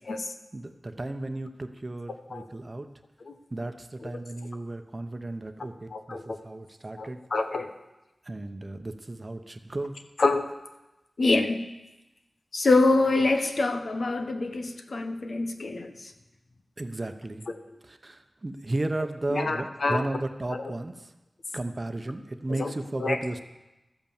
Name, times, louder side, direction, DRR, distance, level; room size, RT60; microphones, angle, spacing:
voice 1, 0.5-2.9 3.5-7.2 8.2-10.0 16.8-17.5 17.9-21.1 21.5-23.4, right 2 dB, 35° right, 8 dB, 0.9 m, -34 dB
voice 2, 5.9-6.4 7.0-7.7 10.2-10.5 11.2-11.6 12.5-16.1 19.3-20.1 20.5-20.6 22.6-22.7 23.0-23.2, left 3 dB, 70° left, 7 dB, 1.1 m, -26 dB
13.0 x 8.2 x 7.3 m, 1.0 s
wide cardioid pair, 80°, 0 cm